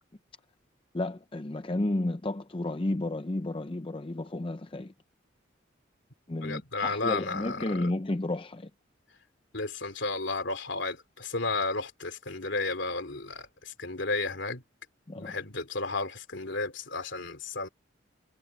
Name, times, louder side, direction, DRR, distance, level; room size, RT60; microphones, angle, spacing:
voice 1, 0.9-4.9 6.3-8.7 15.1-15.4, left 2 dB, 25° left, 0.6 m, -32 dB
voice 2, 6.4-7.9 9.5-14.6 15.1-17.7, left 3 dB, 65° left, 3.2 m, -33 dB
head